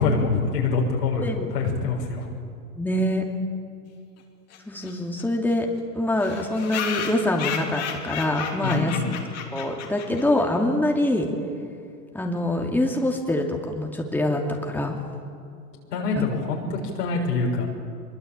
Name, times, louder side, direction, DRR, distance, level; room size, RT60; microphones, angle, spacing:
voice 1, 0.0-2.3 8.6-9.1 15.9-17.7, left 4 dB, 75° left, -1 dB, 6.6 m, -25 dB
voice 2, 2.8-3.2 4.7-5.7 5.9-8.9 9.5-11.3 12.1-15.0 16.2-16.3, left 1 dB, 5° left, 1 dB, 2.7 m, -24 dB
sound 1, 4.5-4.6 4.8-4.9 5.2-5.3 5.5-5.6 6.2-10.4, left 7 dB, 30° left, 3.7 m, -33 dB
24.0 x 22.5 x 8.9 m, 2.4 s
hypercardioid pair, 120°, 48 cm